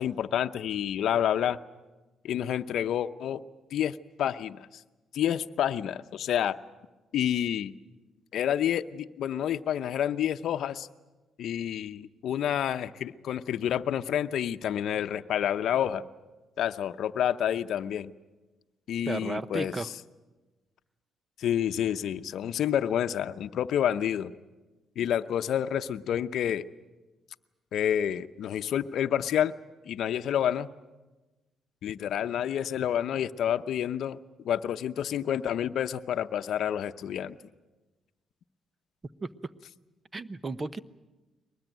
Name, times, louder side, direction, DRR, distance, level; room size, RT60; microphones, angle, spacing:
voice 1, 0.0-1.6 2.2-3.4 3.7-4.7 5.1-6.6 7.1-7.7 8.3-10.9 11.4-16.0 16.6-18.1 18.9-19.7 21.4-24.3 25.0-26.6 27.7-29.5 29.9-30.7 31.8-34.2 34.4-37.4, left 10 dB, 70° left, 9 dB, 0.7 m, -29 dB
voice 2, 19.1-19.9 39.2-39.5 40.1-40.8, right 3 dB, 30° right, 15 dB, 0.9 m, -34 dB
23.0 x 20.0 x 9.2 m, 1.2 s
cardioid pair, 90°, 0 cm